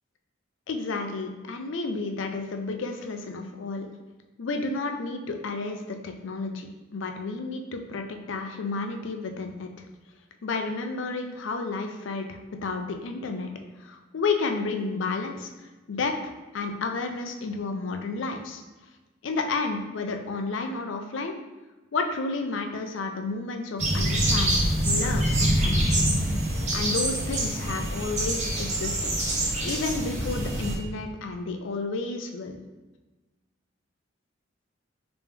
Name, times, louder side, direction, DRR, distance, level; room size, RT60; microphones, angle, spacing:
voice 1, 0.7-3.9 4.4-9.7 10.4-13.5 13.8-15.5 15.9-16.1 16.5-18.6 19.2-21.4 21.9-26.1 26.7-29.1 29.6-32.6, left 3 dB, 80° left, 5 dB, 0.5 m, -31 dB
sound 1, 23.8-30.7, right 1 dB, 40° right, 0.8 m, -25 dB
3.4 x 3.0 x 3.4 m, 1.2 s
head